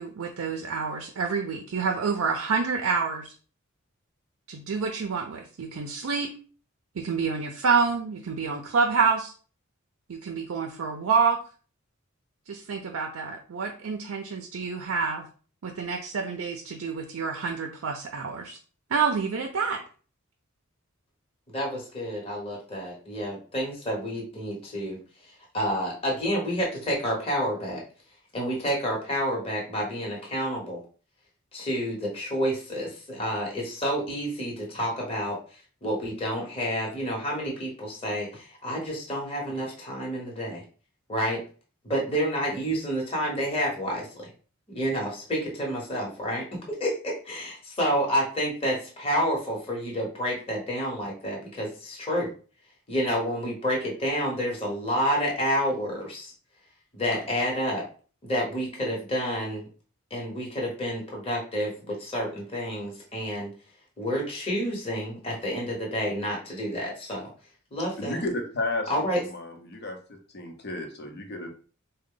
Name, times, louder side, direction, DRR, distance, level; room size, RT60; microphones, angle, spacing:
voice 1, 0.0-3.3 4.5-6.3 6.9-9.3 10.1-11.4 12.5-15.3 15.6-18.6 18.9-19.8, right 5 dB, 85° right, 3 dB, 0.5 m, -28 dB
voice 2, 21.5-27.8 28.3-30.8 31.5-40.6 41.1-41.4 41.8-44.3 44.7-52.3 52.9-56.3 56.9-57.9 58.2-59.7 60.1-63.5 64.0-67.3 67.7-68.2 68.9-69.2, equal, 30° left, -3 dB, 1.0 m, -29 dB
voice 3, 68.0-71.5, left 2 dB, 50° left, 4 dB, 0.8 m, -33 dB
3.7 x 2.2 x 3.7 m, 0.39 s
head